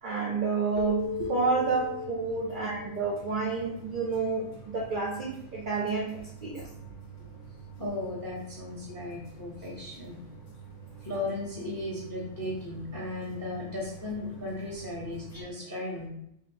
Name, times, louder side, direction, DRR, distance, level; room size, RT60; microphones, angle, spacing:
voice 1, 0.0-6.7, right 4 dB, 65° right, -2 dB, 0.4 m, -30 dB
Keyboard (musical), 0.8-4.0, left 6 dB, 85° right, 1.0 m, -38 dB
sound 1, 1.0-15.4, right 5 dB, 45° left, 0.8 m, -48 dB
voice 2, 7.8-10.2 11.0-16.1, left 2 dB, 30° left, -4 dB, 0.4 m, -36 dB
3.6 x 2.4 x 2.6 m, 0.76 s
omnidirectional pair, 1.4 m